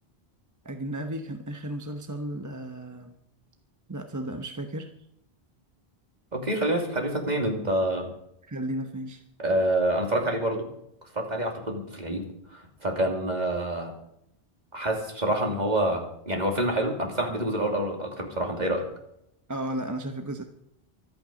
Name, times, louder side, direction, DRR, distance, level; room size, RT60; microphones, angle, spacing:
voice 1, 0.6-3.1 3.9-4.9 8.4-9.2 19.5-20.4, right 1 dB, 20° right, 5 dB, 0.9 m, -34 dB
voice 2, 6.3-8.1 9.4-10.7 11.1-13.9 14.7-18.9, right 1 dB, 40° right, 2 dB, 2.9 m, -27 dB
24.5 x 9.0 x 5.2 m, 0.75 s
omnidirectional pair, 1.1 m